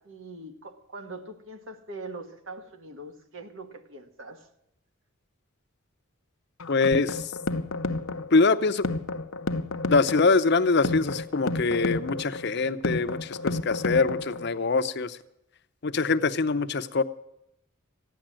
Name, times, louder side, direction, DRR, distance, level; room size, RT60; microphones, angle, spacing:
voice 1, 0.0-4.5, right 2 dB, 70° right, 1.6 m, -42 dB
sound 1, 6.6-14.6, left 3 dB, 85° left, 0.8 m, -31 dB
voice 2, 6.7-7.3 8.3-8.9 9.9-15.2 15.8-17.0, left 3 dB, 55° left, 0.7 m, -24 dB
15.0 x 10.0 x 7.5 m
head